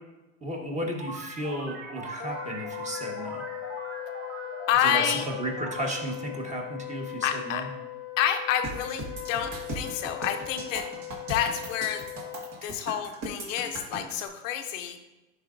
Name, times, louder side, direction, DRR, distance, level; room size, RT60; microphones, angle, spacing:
voice 1, 0.4-3.4 4.8-7.7 12.6-12.7, right 1 dB, 20° right, 1 dB, 1.3 m, -34 dB
sound 1, 1.0-7.2, right 2 dB, 80° right, 1.2 m, -41 dB
Wind instrument woodwind instrument, 2.2-12.6, left 15 dB, 35° left, 0.7 m, -39 dB
voice 2, 4.7-5.3 7.2-7.7 8.2-12.0 12.6-15.0, left 10 dB, 80° left, 7 dB, 0.7 m, -28 dB
sound 2, 8.6-14.2, right 1 dB, 55° right, 1.7 m, -38 dB
10.0 x 4.1 x 2.5 m, 1.0 s
hypercardioid pair, 95°, 38 cm